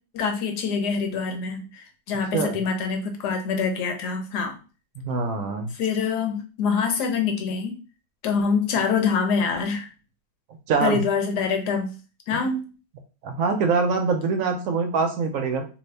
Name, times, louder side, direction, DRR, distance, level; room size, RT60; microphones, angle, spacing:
voice 1, 0.1-4.6 5.7-7.8 8.2-9.9 10.8-11.9 12.3-12.6, left 5 dB, 85° left, 4 dB, 1.3 m, -25 dB
voice 2, 5.0-5.7 10.7-11.0 12.3-12.5 13.2-15.7, right 4 dB, 70° right, 5 dB, 0.8 m, -24 dB
2.7 x 2.6 x 3.2 m, 0.34 s
omnidirectional pair, 1.7 m